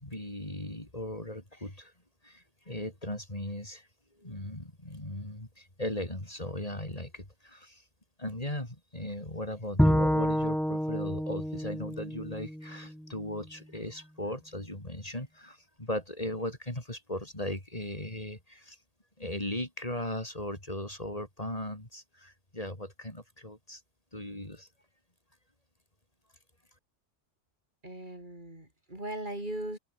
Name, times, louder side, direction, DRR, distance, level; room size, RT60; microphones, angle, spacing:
voice 1, 0.0-1.9 2.2-3.9 4.2-7.8 8.2-18.8 19.2-23.8 24.1-24.7, left 1 dB, 30° left, 4.7 m, -38 dB
Bowed string instrument, 9.8-13.1, equal, ahead, 0.9 m, -28 dB
voice 2, 27.8-29.8, right 1 dB, 40° right, 6.1 m, -38 dB
omnidirectional pair, 1.2 m